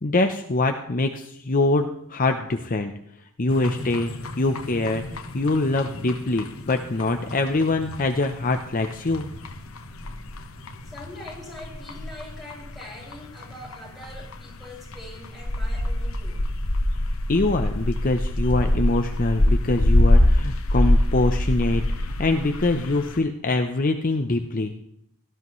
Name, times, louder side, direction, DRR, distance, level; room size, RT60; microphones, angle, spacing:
voice 1, 0.0-2.9 3.4-5.0 5.3-9.3 17.3-24.7, left 2 dB, 40° left, 5 dB, 0.7 m, -24 dB
sound 1, 3.5-23.2, left 1 dB, 75° left, 1.2 m, -26 dB
voice 2, 10.8-16.4, left 1 dB, ahead, -5 dB, 5.8 m, -42 dB
18.0 x 13.0 x 3.2 m, 0.72 s
head